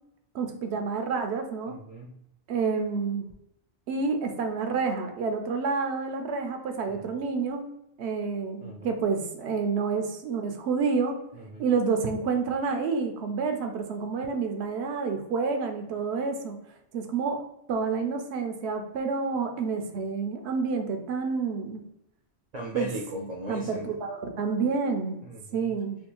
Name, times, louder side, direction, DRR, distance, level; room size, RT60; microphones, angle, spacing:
voice 1, 0.3-1.8 2.5-3.2 3.9-7.7 8.0-11.2 11.6-16.6 16.9-17.4 17.7-21.8 22.7-22.9 23.5-25.2 25.5-26.0, right 5 dB, 80° right, 5 dB, 0.8 m, -29 dB
voice 2, 1.7-2.1 6.9-7.2 8.6-8.9 11.3-11.6 22.5-23.9 25.2-25.7, right 1 dB, 55° right, -1 dB, 0.5 m, -37 dB
3.4 x 2.3 x 2.9 m, 0.80 s
omnidirectional pair, 1.1 m